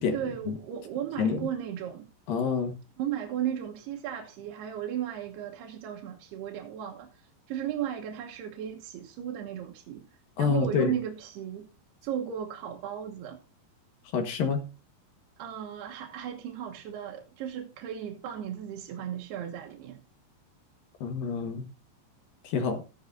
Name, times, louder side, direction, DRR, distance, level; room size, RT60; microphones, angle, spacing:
voice 1, 0.1-2.1 3.0-10.1 10.4-11.7 12.0-13.4 15.4-20.0, right 10 dB, 75° right, 3.1 m, -35 dB
voice 2, 1.2-1.5 2.3-2.7 10.4-10.9 14.1-14.6 21.0-21.6 22.4-22.8, left 5 dB, 65° left, 2.9 m, -27 dB
14.5 x 11.0 x 2.6 m
omnidirectional pair, 4.8 m